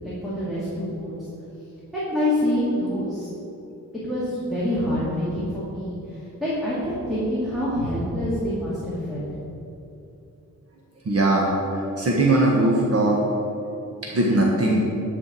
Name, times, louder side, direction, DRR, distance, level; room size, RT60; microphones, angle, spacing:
voice 1, 0.0-1.1 1.9-3.3 4.0-9.4, left 1 dB, ahead, -10 dB, 2.4 m, -26 dB
voice 2, 11.0-13.2 14.0-14.9, right 1 dB, 45° right, -3 dB, 1.3 m, -20 dB
11.5 x 5.0 x 7.5 m, 2.8 s
wide cardioid pair, 160°, 34 cm